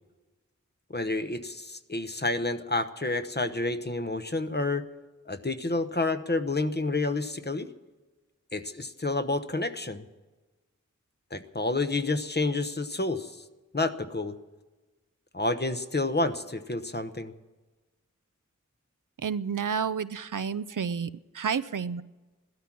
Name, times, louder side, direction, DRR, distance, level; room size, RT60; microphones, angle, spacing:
voice 1, 0.9-4.8 5.3-7.7 8.5-10.0 11.3-13.3 13.7-14.3 15.3-17.3, left 2 dB, 35° left, 10 dB, 1.0 m, -29 dB
voice 2, 19.2-21.1 21.3-22.0, right 6 dB, 90° right, 15 dB, 0.5 m, -30 dB
16.5 x 12.5 x 6.1 m, 1.2 s
wide cardioid pair, 50°, 30 cm